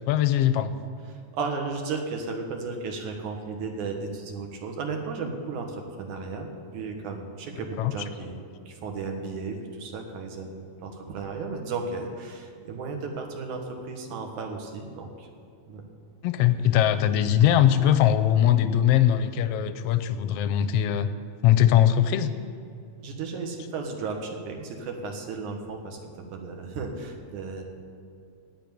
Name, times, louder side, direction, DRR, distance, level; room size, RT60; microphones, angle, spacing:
voice 1, 0.1-0.7 7.8-7.9 16.2-21.1 21.4-22.3, left 11 dB, 75° left, 11 dB, 1.4 m, -21 dB
voice 2, 1.1-8.4 8.7-15.3 15.7-15.8 23.0-27.7, right 4 dB, 85° right, 3 dB, 3.0 m, -34 dB
17.5 x 6.0 x 9.3 m, 2.4 s
omnidirectional pair, 3.4 m